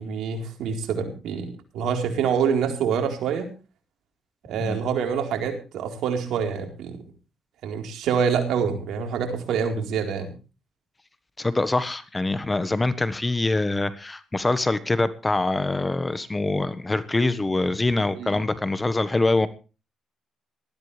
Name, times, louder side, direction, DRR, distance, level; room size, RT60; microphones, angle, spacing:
voice 1, 0.0-3.5 4.5-7.0 7.6-10.3 18.1-18.4, right 6 dB, 80° right, 3 dB, 4.2 m, -26 dB
voice 2, 11.4-19.5, left 2 dB, 20° left, 13 dB, 1.3 m, -24 dB
19.5 x 14.0 x 3.4 m, 0.33 s
cardioid pair, 90°, 0 cm